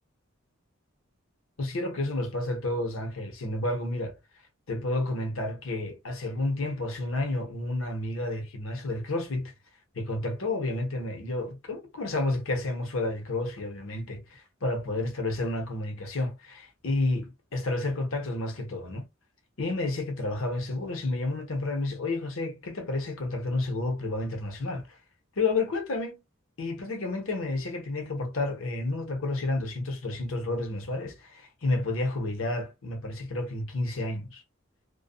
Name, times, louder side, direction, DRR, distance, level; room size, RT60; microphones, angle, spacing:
voice 1, 1.6-4.2 4.7-9.5 9.9-19.1 19.6-25.0 25.4-26.2 26.6-34.4, left 2 dB, 80° left, 0.9 m, -30 dB
2.5 x 2.3 x 2.4 m
head